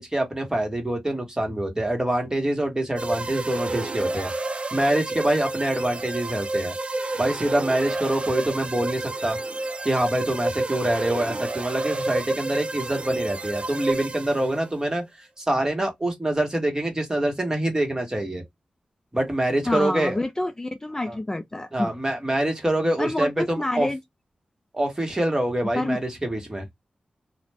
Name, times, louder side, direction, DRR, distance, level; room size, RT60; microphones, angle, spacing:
voice 1, 0.0-4.3 4.7-6.8 7.2-9.4 9.8-18.4 19.1-20.2 21.1-21.2 21.7-23.9 24.7-26.7, right 1 dB, 20° right, 1.2 m, -25 dB
sound 1, 3.0-14.7, right 2 dB, 45° right, 0.5 m, -30 dB
voice 2, 19.7-21.9 23.0-24.0 25.8-26.0, left 1 dB, 20° left, 0.4 m, -27 dB
2.4 x 2.1 x 3.2 m
cardioid pair, 55°, 3 cm